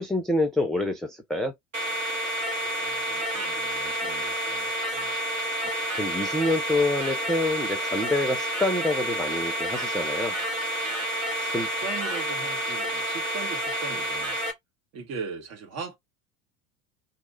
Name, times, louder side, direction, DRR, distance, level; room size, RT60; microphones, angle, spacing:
voice 1, 0.0-1.5 5.6-5.7 6.0-10.4 11.5-11.7, left 2 dB, ahead, 0.3 m, -27 dB
sound 1, 1.7-14.5, right 1 dB, 90° right, 1.1 m, -29 dB
voice 2, 2.8-5.2 11.4-11.5 11.8-14.4 14.9-16.0, right 5 dB, 40° right, 1.6 m, -39 dB
2.8 x 2.7 x 3.8 m
figure-of-eight pair, 80°, 38 cm